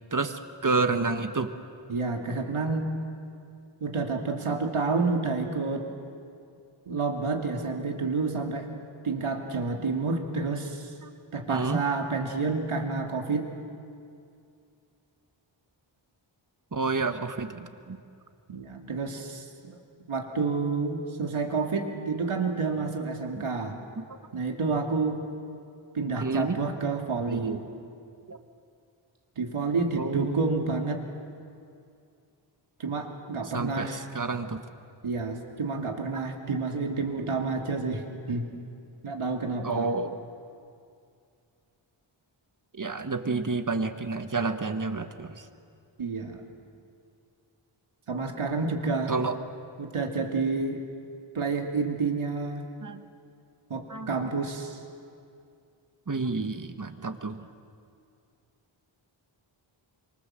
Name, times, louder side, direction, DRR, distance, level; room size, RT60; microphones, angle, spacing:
voice 1, 0.1-1.5 11.0-11.1 11.5-11.8 16.7-18.0 23.4-23.5 24.0-24.1 26.1-26.6 27.3-27.6 28.3-28.4 30.0-30.6 33.5-34.6 36.1-36.2 39.6-40.1 42.7-45.4 49.1-49.3 52.8-53.0 53.9-54.1 56.1-57.4, right 3 dB, 40° right, 8 dB, 1.6 m, -29 dB
voice 2, 1.9-3.0 3.8-5.8 6.9-8.7 9.0-10.9 11.3-13.5 18.5-19.8 20.1-23.8 24.3-25.2 25.9-27.6 29.4-31.0 32.8-34.0 35.0-38.5 39.0-39.9 46.0-46.4 48.1-49.1 49.8-50.8 51.3-52.6 53.7-54.8, right 4 dB, 90° right, 3 dB, 2.7 m, -29 dB
26.5 x 24.0 x 7.6 m, 2.4 s
wide cardioid pair, 70°, 48 cm